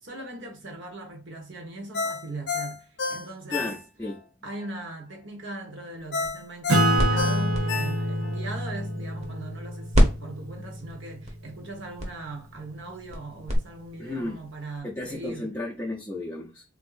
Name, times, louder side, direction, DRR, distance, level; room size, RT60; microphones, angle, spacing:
voice 1, 0.0-3.7 4.4-15.5, right 2 dB, 60° right, 1.1 m, -40 dB
Ringtone, 1.9-4.2 4.6-4.7 6.1-8.4 8.8-8.9, left 4 dB, 55° left, 0.6 m, -31 dB
voice 2, 3.5-4.2 14.0-14.4 14.8-16.6, left 2 dB, 10° left, 0.4 m, -33 dB
sound 1, 6.0-9.6 9.9-13.6, equal, 30° right, 0.8 m, -28 dB
Acoustic guitar / Strum, 6.7-11.7, right 1 dB, 80° right, 0.9 m, -27 dB
3.6 x 2.6 x 2.4 m
head